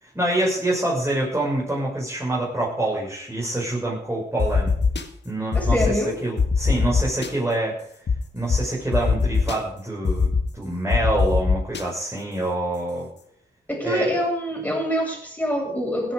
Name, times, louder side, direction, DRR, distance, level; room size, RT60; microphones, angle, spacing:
voice 1, 0.0-4.7 5.2-7.8 8.3-13.1 13.8-14.2, right 1 dB, 15° right, -4 dB, 6.4 m, -26 dB
sound 1, 4.4-5.0 5.5-5.9 6.4-7.3 8.1-8.2 8.5-8.6 8.9-9.6 10.1-10.4 10.9-11.8, left 5 dB, 65° left, 1.8 m, -20 dB
voice 2, 5.5-6.2 13.7-16.1, equal, 10° left, 0 dB, 7.5 m, -25 dB
16.5 x 10.5 x 5.0 m, 0.66 s
cardioid pair, 50°, 19 cm